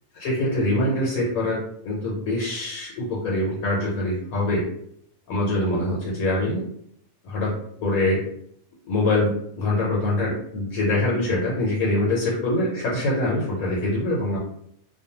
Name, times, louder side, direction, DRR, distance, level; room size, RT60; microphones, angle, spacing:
voice 1, 0.2-1.6 1.8-4.6 5.3-6.6 7.2-7.5 7.8-8.2 8.9-14.4, left 1 dB, 75° left, -4 dB, 1.1 m, -24 dB
2.5 x 2.2 x 2.8 m, 0.70 s
omnidirectional pair, 1.5 m